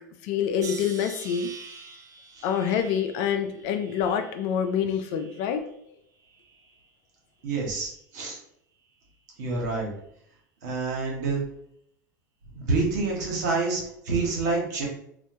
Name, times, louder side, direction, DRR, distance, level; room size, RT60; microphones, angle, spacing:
voice 1, 0.2-1.5 2.4-5.6, left 8 dB, 55° left, 8 dB, 0.4 m, -26 dB
sound 1, 0.6-5.8 6.2-6.9 7.6-7.9, right 5 dB, 35° right, 0.4 m, -46 dB
voice 2, 7.4-8.4 9.4-9.9 10.6-11.4 12.5-14.9, right 3 dB, 70° right, -1 dB, 1.0 m, -27 dB
2.1 x 2.1 x 2.7 m, 0.70 s
hypercardioid pair, 90°, 10 cm